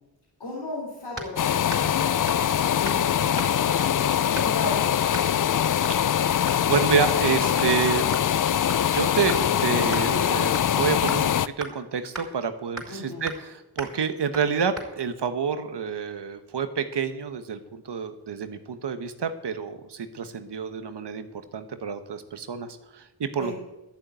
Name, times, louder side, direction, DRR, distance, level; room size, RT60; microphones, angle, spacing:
voice 1, 0.4-2.2 2.8-5.4 12.9-13.2 23.4-23.5, left 2 dB, 85° left, -4 dB, 3.6 m, -36 dB
sound 1, 1.2-1.4 1.7-2.0 2.3-2.5 2.8-3.0 3.4-3.7 4.3-4.7 5.1-5.3 5.8-6.0 6.5-6.7 7.0-7.3 7.6-7.7 8.1-9.5 9.9-10.1 10.6-10.8 11.1-11.2 11.6-11.7 12.1-12.3 12.8-13.0 13.3-13.5 13.8-14.0 14.3-14.5 14.8-14.9, right 2 dB, ahead, 4.3 m, -38 dB
sound 2, 1.4-11.5, left 9 dB, 50° left, 0.5 m, -23 dB
voice 2, 6.6-8.1 8.9-21.3 21.5-23.5, right 6 dB, 80° right, 9 dB, 1.2 m, -28 dB
12.0 x 7.3 x 9.1 m, 0.98 s
cardioid pair, 55°, 41 cm